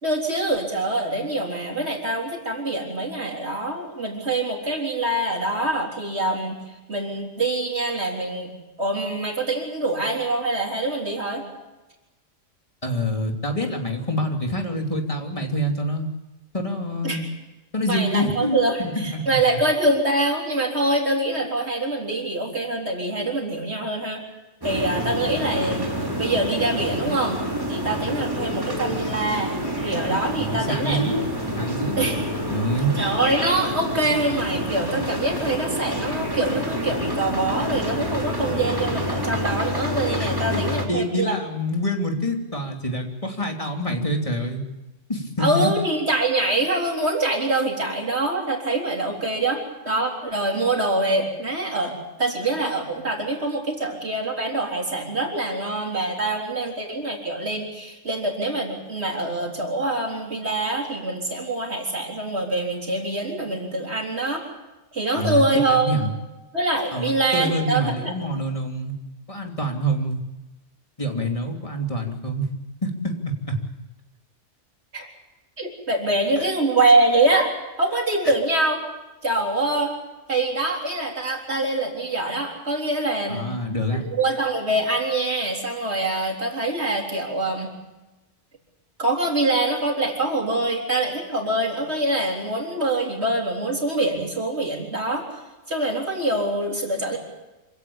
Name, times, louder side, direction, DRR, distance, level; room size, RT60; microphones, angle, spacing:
voice 1, 0.0-6.5 6.9-8.5 8.8-11.4 17.0-17.2 17.9-24.2 24.6-25.9 26.2-27.4 27.7-31.3 32.0-32.2 33.0-41.3 45.4-51.9 52.2-64.4 64.9-65.9 66.5-68.1 74.9-75.1 75.6-77.5 77.8-78.8 79.2-79.9 80.3-83.4 84.0-87.7 89.0-95.2 95.7-97.2, right 2 dB, 65° right, 0 dB, 4.1 m, -24 dB
voice 2, 12.8-16.1 16.5-17.2 17.7-19.2 30.3-31.2 31.6-32.1 32.5-32.9 40.2-44.6 45.1-45.7 65.1-66.1 66.9-68.9 69.3-70.2 71.0-72.5 72.8-73.6 76.4-76.5 83.3-84.0, equal, 30° left, 2 dB, 3.2 m, -26 dB
sound 1, 24.6-40.9, equal, 20° right, 3.3 m, -28 dB
26.5 x 17.0 x 8.8 m, 1.1 s
omnidirectional pair, 1.2 m